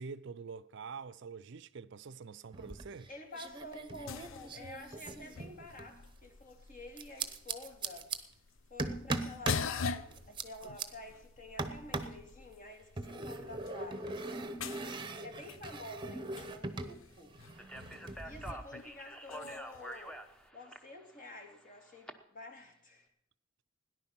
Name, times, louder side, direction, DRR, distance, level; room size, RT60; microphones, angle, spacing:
voice 1, 0.0-3.1 18.3-18.5, right 5 dB, 60° right, 0.5 m, -46 dB
sound 1, 2.5-3.1 3.3-6.0 7.0-8.2 8.8-9.7 10.1-10.9 11.6-12.2 13.0-17.0 17.2-18.5, right 3 dB, 25° right, 0.9 m, -40 dB
voice 2, 3.1-8.1 8.7-14.2 15.2-17.4 18.2-20.2 20.5-23.1, left 2 dB, 40° left, 2.3 m, -49 dB
sound 2, 3.5-20.5, left 5 dB, 75° left, 0.6 m, -45 dB
Speech, 17.6-22.1, equal, 5° left, 0.9 m, -47 dB
17.5 x 10.5 x 5.9 m
head